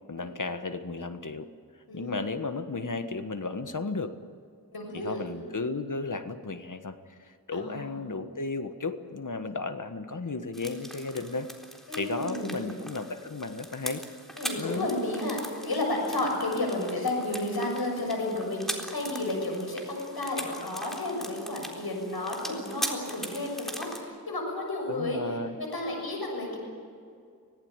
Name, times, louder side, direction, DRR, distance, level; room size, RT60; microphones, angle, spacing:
voice 1, 0.1-1.5 1.9-4.1 4.9-11.5 12.0-14.0 14.6-14.9 24.9-25.6, left 3 dB, 55° left, 9 dB, 1.5 m, -34 dB
voice 2, 1.9-2.2 4.7-5.3 7.5-7.9 11.9-12.7 14.4-25.2 25.6-26.6, left 2 dB, 80° left, 1 dB, 6.8 m, -32 dB
sound 1, 10.5-24.0, equal, ahead, 3.9 m, -41 dB
25.5 x 18.0 x 9.0 m, 2.2 s
wide cardioid pair, 70°, 37 cm